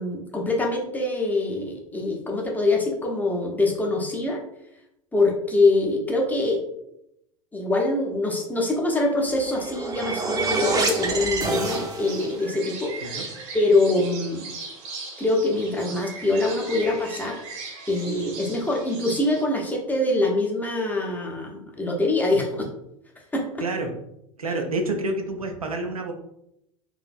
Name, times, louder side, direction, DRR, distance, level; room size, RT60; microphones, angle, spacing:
voice 1, 0.0-4.4 5.1-6.6 7.5-13.2 13.5-14.5 15.2-17.4 17.9-22.7 23.3-23.7, left 2 dB, 10° left, 0 dB, 0.7 m, -24 dB
sound 1, 9.3-12.3, right 4 dB, 20° right, 0.7 m, -27 dB
sound 2, 10.4-19.4, right 4 dB, 50° right, 0.9 m, -39 dB
voice 2, 23.6-24.0 24.4-26.1, right 2 dB, 85° right, 3 dB, 0.6 m, -28 dB
4.0 x 2.6 x 2.4 m, 0.81 s
figure-of-eight pair, 85°, 18 cm